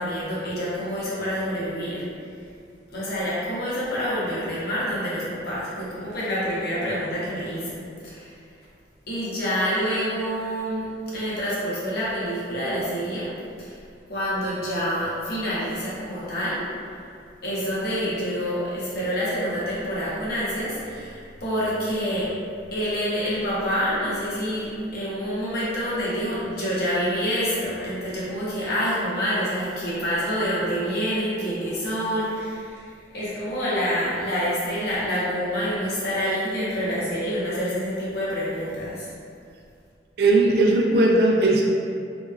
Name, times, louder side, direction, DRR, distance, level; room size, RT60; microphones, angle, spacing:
voice 1, 0.0-2.1 2.9-8.3 9.1-13.3 13.6-13.8 14.1-16.6 17.4-22.3 22.7-39.1, equal, 60° left, -8 dB, 0.8 m, -27 dB
voice 2, 40.2-41.6, right 2 dB, 60° right, -1 dB, 0.4 m, -18 dB
2.8 x 2.2 x 2.3 m, 2.3 s
head